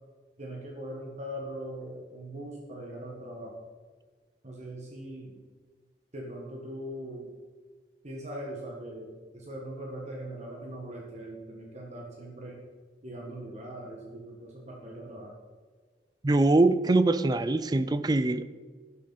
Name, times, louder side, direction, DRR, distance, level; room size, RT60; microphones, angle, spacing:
voice 1, 0.4-3.5 4.4-5.4 6.1-7.3 8.0-12.6 13.0-15.3, right 1 dB, 40° right, 1.6 m, -40 dB
voice 2, 16.2-18.4, right 2 dB, 25° right, 0.4 m, -23 dB
11.5 x 11.5 x 4.3 m
head